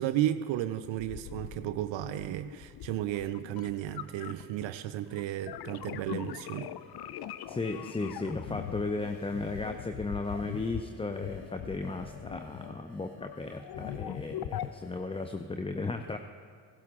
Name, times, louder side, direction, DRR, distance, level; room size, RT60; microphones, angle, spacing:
voice 1, 0.0-6.7, right 12 dB, 65° right, 12 dB, 0.6 m, -33 dB
sound 1, 0.8-4.7 5.1-12.8 13.2-14.7, left 11 dB, 50° left, 0.6 m, -41 dB
sound 2, 6.3-15.4, left 1 dB, 85° left, 2.2 m, -58 dB
voice 2, 7.5-16.2, left 3 dB, 10° left, 7 dB, 0.6 m, -35 dB
16.5 x 12.0 x 3.7 m, 2.2 s
hypercardioid pair, 40°, 48 cm